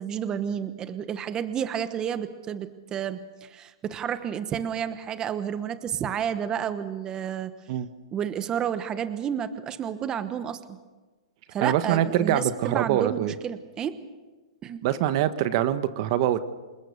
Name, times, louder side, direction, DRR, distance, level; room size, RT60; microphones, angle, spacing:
voice 1, 0.0-7.5 8.1-10.8 11.5-14.0 14.6-14.8, right 8 dB, 20° right, 11 dB, 1.1 m, -31 dB
voice 2, 11.6-13.3 14.8-16.4, right 11 dB, 50° right, 12 dB, 1.3 m, -24 dB
27.5 x 20.5 x 6.7 m, 1.3 s
hypercardioid pair, 140°, 3 cm